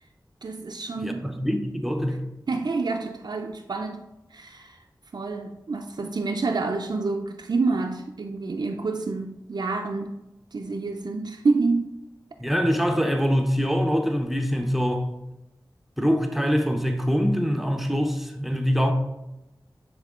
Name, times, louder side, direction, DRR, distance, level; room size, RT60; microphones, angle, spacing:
voice 1, 0.4-1.3 2.5-4.8 5.1-10.2 10.5-11.9, right 3 dB, 65° right, 2 dB, 0.5 m, -28 dB
voice 2, 1.0-2.2 12.4-15.1 16.0-18.9, equal, ahead, 4 dB, 0.7 m, -24 dB
10.0 x 3.7 x 3.6 m, 0.95 s
wide cardioid pair, 75°, 8 cm